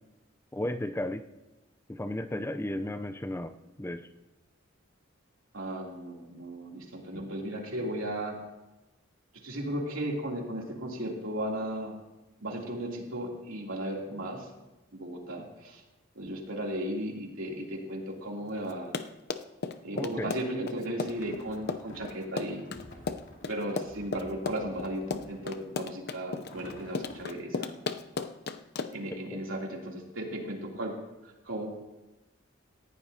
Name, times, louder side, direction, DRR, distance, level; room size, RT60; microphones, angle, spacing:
voice 1, 0.5-1.2 1.9-4.1 7.1-7.2 19.9-20.3 29.1-29.4, left 1 dB, 10° left, 9 dB, 0.5 m, -34 dB
voice 2, 5.5-8.3 9.4-11.9 12.4-14.5 14.9-15.8 16.1-18.9 19.8-22.6 23.5-27.8 28.9-30.9 31.5-31.7, right 1 dB, 90° right, -2 dB, 3.0 m, -35 dB
Run, 18.7-29.1, left 4 dB, 55° left, 0.6 m, -35 dB
sound 1, 21.0-25.9 26.4-27.2, left 1 dB, 70° left, 2.7 m, -50 dB
18.5 x 15.0 x 2.8 m, 1.1 s
head